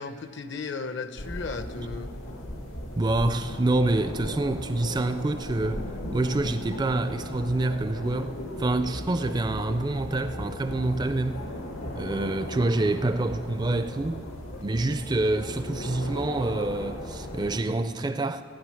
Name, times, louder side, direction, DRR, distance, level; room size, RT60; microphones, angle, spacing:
voice 1, 0.0-2.1, left 4 dB, 60° left, 0.7 m, -35 dB
sound 1, 1.2-17.6, left 1 dB, 85° left, 1.8 m, -37 dB
voice 2, 3.0-5.9 6.1-11.4 11.9-14.2 14.6-18.4, right 2 dB, 20° right, 0.4 m, -27 dB
16.5 x 9.6 x 6.4 m
head